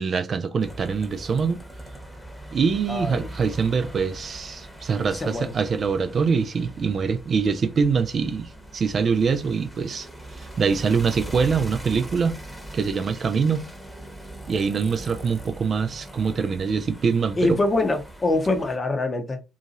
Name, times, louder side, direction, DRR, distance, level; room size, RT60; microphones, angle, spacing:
voice 1, 0.0-1.6 2.5-10.1 10.4-12.4 12.7-13.7 14.5-17.6, right 5 dB, 45° right, 0.4 m, -24 dB
sound 1, 0.6-18.8, right 1 dB, ahead, 1.0 m, -41 dB
voice 2, 2.9-3.3 5.1-5.5 17.4-19.4, left 2 dB, 30° left, 0.8 m, -24 dB
2.8 x 2.7 x 2.5 m
hypercardioid pair, 50°, 0 cm